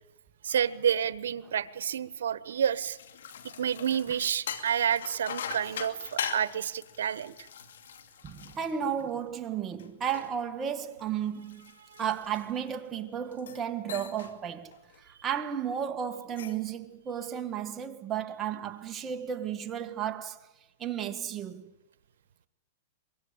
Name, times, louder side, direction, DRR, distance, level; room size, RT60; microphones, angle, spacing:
voice 1, 0.4-3.0 3.6-7.5 11.8-12.0, right 8 dB, 85° right, 1.2 m, -29 dB
sound 1, 2.5-9.3 9.8-12.8 13.3-13.6 13.9-14.4 14.7-15.0 16.1-16.7, left 8 dB, 85° left, 2.5 m, -41 dB
voice 2, 8.2-11.7 12.0-20.4 20.8-21.7, right 8 dB, 20° right, 1.6 m, -33 dB
24.0 x 23.0 x 8.9 m
hypercardioid pair, 150°, 0 cm